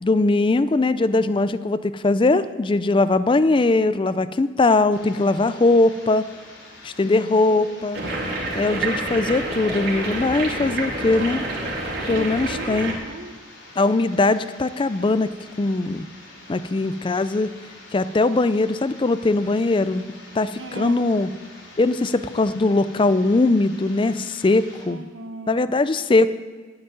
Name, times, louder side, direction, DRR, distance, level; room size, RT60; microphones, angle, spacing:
voice 1, 0.0-6.3 6.8-8.0 8.5-11.4 12.1-12.9 13.8-15.3 15.6-16.1 16.5-17.5 17.9-20.1 20.3-21.3 21.8-25.0 25.5-26.3, left 2 dB, 25° left, 14 dB, 0.4 m, -20 dB
sound 1, 4.9-24.9, left 2 dB, 90° left, 3.4 m, -46 dB
voice 2, 7.1-8.6 12.0-13.3 20.5-21.1 24.9-25.6, right 3 dB, 80° right, 8 dB, 1.0 m, -38 dB
sound 2, 7.9-12.9, right 2 dB, 55° right, 2.5 m, -28 dB
9.3 x 8.0 x 9.1 m, 1.4 s
head